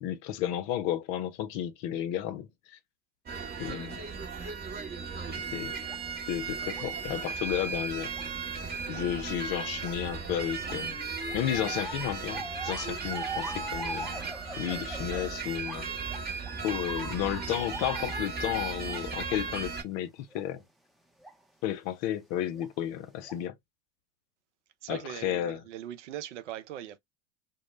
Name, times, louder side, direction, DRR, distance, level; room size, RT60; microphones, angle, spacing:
voice 1, 0.0-2.8 3.6-4.0 5.4-5.8 6.3-8.1 8.9-11.0 11.3-14.1 14.6-15.9 16.6-20.6 21.6-23.6 24.9-25.6, left 11 dB, 50° left, 0.5 m, -32 dB
sound 1, 3.3-19.8, right 5 dB, 25° right, 0.8 m, -36 dB
sound 2, 5.9-6.0 6.7-6.9 7.4-7.5 8.1-8.2 8.9-9.0 9.8-9.9 10.6-15.8 16.1-19.4 19.7-19.8 20.3-20.4 21.2-21.3 22.5-22.7 23.2-23.4, right 1 dB, ahead, 0.4 m, -42 dB
voice 2, 24.8-27.0, right 12 dB, 75° right, 0.6 m, -40 dB
2.1 x 2.0 x 3.0 m
hypercardioid pair, 80°, 35 cm